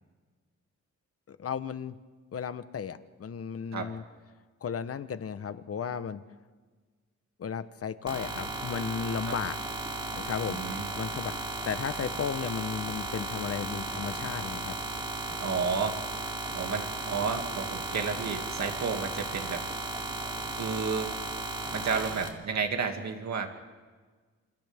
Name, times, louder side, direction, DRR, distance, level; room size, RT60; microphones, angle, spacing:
voice 1, 1.3-1.9 2.3-4.0 4.6-6.2 7.4-9.6 9.9-10.6 10.9-14.7, left 7 dB, 50° left, 12 dB, 0.9 m, -34 dB
sound 1, 8.1-22.3, right 2 dB, 15° right, 3.0 m, -35 dB
voice 2, 10.5-10.9 15.4-16.0 16.5-19.6 20.5-21.1 21.7-23.5, right 5 dB, 65° right, 4 dB, 2.3 m, -31 dB
28.0 x 27.5 x 3.6 m, 1.4 s
wide cardioid pair, 110°, 30 cm